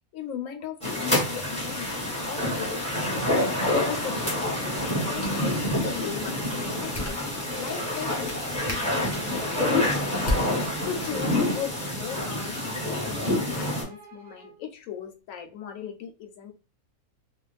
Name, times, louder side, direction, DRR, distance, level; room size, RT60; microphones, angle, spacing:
voice 1, 0.1-2.8 3.7-4.4 5.0-10.4 10.8-16.5, left 8 dB, 70° left, 5 dB, 0.9 m, -38 dB
sound 1, 0.8-13.8, left 1 dB, 5° left, 0.9 m, -27 dB
Bowed string instrument, 6.1-14.6, right 2 dB, 45° right, 0.8 m, -47 dB
sound 2, 6.8-11.2, left 1 dB, 35° left, 0.6 m, -38 dB
2.4 x 2.2 x 3.2 m, 0.34 s
omnidirectional pair, 1.5 m